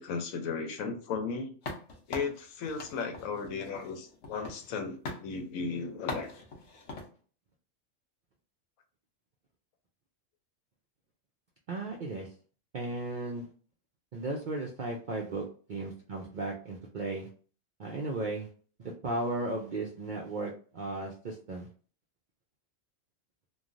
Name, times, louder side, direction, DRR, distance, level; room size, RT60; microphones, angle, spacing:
voice 1, 0.0-1.5 2.1-6.3, left 5 dB, 85° left, 6 dB, 1.1 m, -35 dB
sound 1, 1.6-4.8 5.1-5.3 6.1-7.1, left 3 dB, 65° left, 0.9 m, -41 dB
voice 2, 11.7-12.3 12.7-13.5 14.1-17.3 17.8-18.5 18.8-21.7, right 2 dB, 70° right, -1 dB, 0.4 m, -35 dB
3.1 x 2.2 x 2.5 m, 0.41 s
omnidirectional pair, 1.4 m